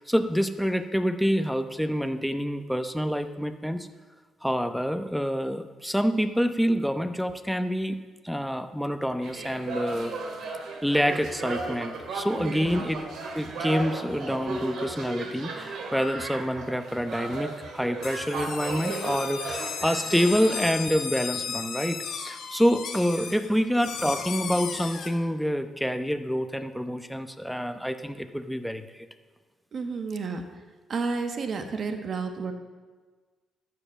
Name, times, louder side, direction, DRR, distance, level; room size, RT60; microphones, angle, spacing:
voice 1, 0.0-3.9 4.4-8.0 8.2-10.1 10.8-13.0 13.3-29.1, equal, ahead, 8 dB, 0.8 m, -27 dB
sound 1, 9.2-20.7, right 3 dB, 75° right, 2.1 m, -35 dB
sound 2, 18.0-25.1, left 6 dB, 70° left, 1.5 m, -35 dB
voice 2, 29.7-30.4 30.9-32.5, right 4 dB, 50° right, 6 dB, 1.4 m, -31 dB
12.0 x 7.9 x 7.3 m, 1.4 s
cardioid pair, 90°, 0 cm